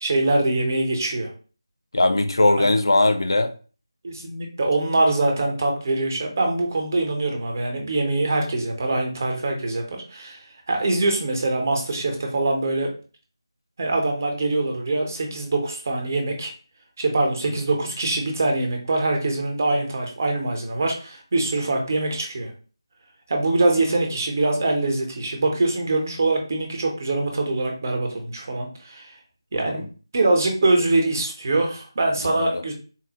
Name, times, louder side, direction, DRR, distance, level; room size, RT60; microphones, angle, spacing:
voice 1, 0.0-1.3 2.6-2.7 4.0-12.9 13.8-16.5 17.0-22.5 23.3-29.1 29.5-29.8 30.1-32.7, right 2 dB, 35° right, 2 dB, 0.8 m, -23 dB
voice 2, 1.9-3.5 29.5-29.8 32.2-32.6, left 2 dB, 65° left, 7 dB, 0.4 m, -20 dB
3.8 x 2.0 x 2.8 m, 0.37 s
figure-of-eight pair, 160°, 3 cm